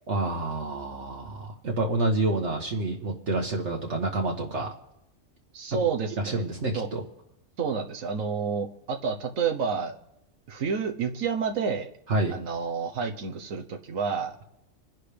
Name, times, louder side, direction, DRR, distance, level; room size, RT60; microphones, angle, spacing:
voice 1, 0.1-4.7 6.2-7.0 12.1-12.4, right 2 dB, 60° right, 0 dB, 1.6 m, -28 dB
voice 2, 5.5-6.4 6.7-6.9 7.6-9.9 10.5-11.9 12.3-14.4, right 6 dB, 90° right, 4 dB, 1.4 m, -29 dB
27.0 x 10.5 x 3.4 m, 0.90 s
omnidirectional pair, 1.4 m